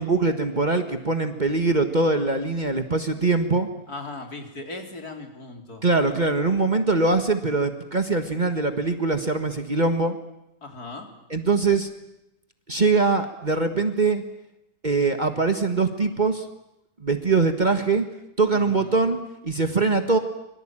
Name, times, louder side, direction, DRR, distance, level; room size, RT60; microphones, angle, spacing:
voice 1, 0.0-3.7 5.8-10.2 11.3-11.9 12.7-14.2 14.8-16.5 17.0-18.0 18.4-20.2, right 3 dB, 30° right, 7 dB, 1.6 m, -22 dB
voice 2, 3.9-5.8 10.6-11.1 18.7-19.0, left 2 dB, 80° left, 4 dB, 4.1 m, -38 dB
25.5 x 23.0 x 8.9 m, 0.86 s
omnidirectional pair, 1.6 m